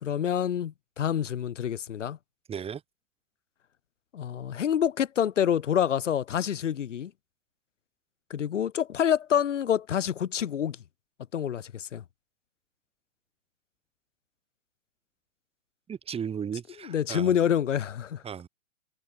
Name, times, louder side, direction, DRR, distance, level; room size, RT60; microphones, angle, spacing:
voice 1, 0.0-2.2 4.1-7.1 8.3-10.8 11.3-12.0 16.8-18.2, left 9 dB, 65° left, 5.1 m, -27 dB
voice 2, 2.5-2.8 15.9-17.3 18.2-18.5, right 7 dB, 15° right, 6.2 m, -35 dB
hypercardioid pair, 130°, 39 cm